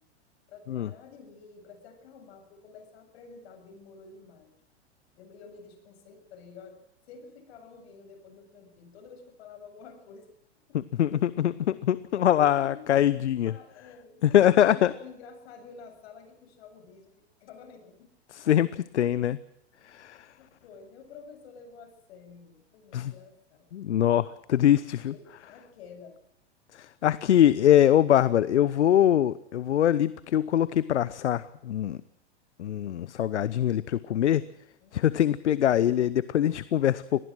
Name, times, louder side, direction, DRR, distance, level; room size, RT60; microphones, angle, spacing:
voice 1, 0.5-4.5 5.1-6.8 7.1-10.3 10.7-10.8 12.2-13.2 13.4-17.1 17.4-18.1 20.4-23.8 25.1-26.2 34.8-35.3, left 5 dB, 60° left, 7 dB, 7.5 m, -49 dB
voice 2, 10.7-13.5 14.2-14.9 18.3-19.4 19.9-20.2 22.9-23.1 23.7-25.1 26.8-32.0 32.6-34.4 34.9-37.2, left 11 dB, 80° left, 18 dB, 0.9 m, -23 dB
25.0 x 19.0 x 6.2 m, 0.74 s
hypercardioid pair, 105°, 34 cm